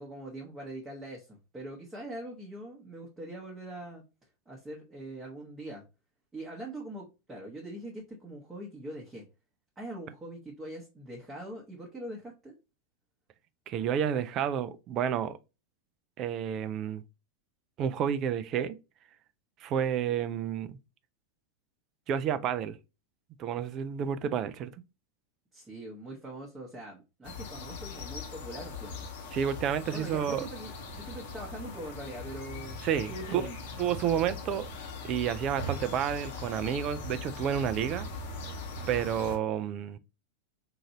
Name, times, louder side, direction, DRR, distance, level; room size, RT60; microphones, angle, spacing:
voice 1, 0.0-4.0 4.5-5.8 6.3-9.2 9.8-12.6 25.5-29.1 29.9-32.8 33.1-33.6, right 1 dB, 10° right, 0.9 m, -42 dB
voice 2, 13.7-15.4 16.2-17.0 17.8-18.8 19.6-20.7 22.1-22.8 23.4-24.7 29.3-30.5 32.8-33.4 33.8-34.7 35.0-38.1 38.9-40.0, right 9 dB, 35° right, 0.4 m, -30 dB
sound 1, 27.2-39.4, left 2 dB, 55° left, 1.0 m, -40 dB
3.8 x 2.5 x 2.9 m
figure-of-eight pair, 90°, 0 cm